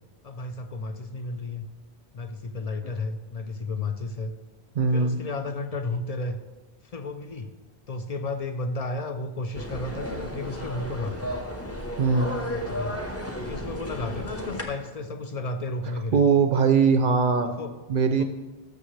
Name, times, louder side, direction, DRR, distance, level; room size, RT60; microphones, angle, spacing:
voice 1, 0.2-1.7 2.1-4.3 4.9-6.4 6.8-7.5 7.9-11.3 12.3-13.0 13.4-16.2 17.2-17.7 18.2-18.3, left 2 dB, 45° left, 7 dB, 0.6 m, -33 dB
voice 2, 4.8-5.2 12.0-12.3 16.1-17.5 17.9-18.2, right 5 dB, 60° right, 7 dB, 0.6 m, -21 dB
sound 1, 9.5-14.6, equal, 15° left, 0.8 m, -33 dB
11.5 x 6.8 x 3.2 m, 1.2 s
omnidirectional pair, 1.1 m